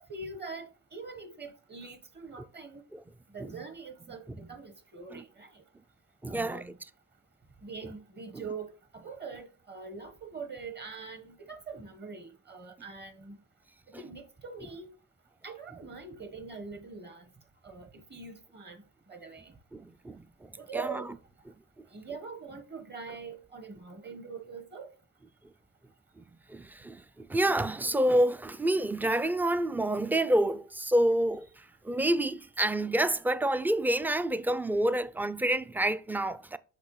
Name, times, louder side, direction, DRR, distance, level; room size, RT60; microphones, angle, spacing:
voice 1, 0.0-2.8 3.3-5.6 6.3-6.8 7.6-13.4 14.0-14.9 15.4-17.3 17.6-18.8 19.1-19.5 20.6-21.1 21.9-24.9, right 4 dB, 35° right, 1.2 m, -43 dB
voice 2, 6.2-6.6 13.9-14.0 19.7-21.0 26.2-31.5 31.8-36.6, right 1 dB, 5° right, 0.3 m, -28 dB
6.6 x 5.1 x 3.1 m
cardioid pair, 90°, 30 cm